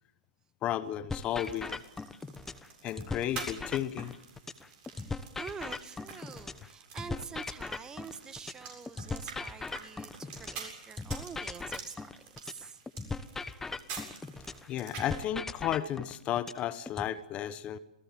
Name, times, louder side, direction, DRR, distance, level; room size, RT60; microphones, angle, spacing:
voice 1, 0.6-1.8 2.8-4.1 14.0-14.1 14.7-17.8, left 11 dB, 30° left, 15 dB, 1.1 m, -33 dB
sound 1, 1.1-2.7 3.0-6.7 7.0-10.7 11.0-14.7 15.0-17.1, left 3 dB, 10° left, 1.1 m, -39 dB
sound 2, 1.3-15.2, right 6 dB, 35° right, 7.6 m, -48 dB
voice 2, 4.9-11.9 12.3-12.8, right 6 dB, 15° right, 14 dB, 1.4 m, -46 dB
28.0 x 18.5 x 7.7 m, 0.89 s
hypercardioid pair, 115°, 4 cm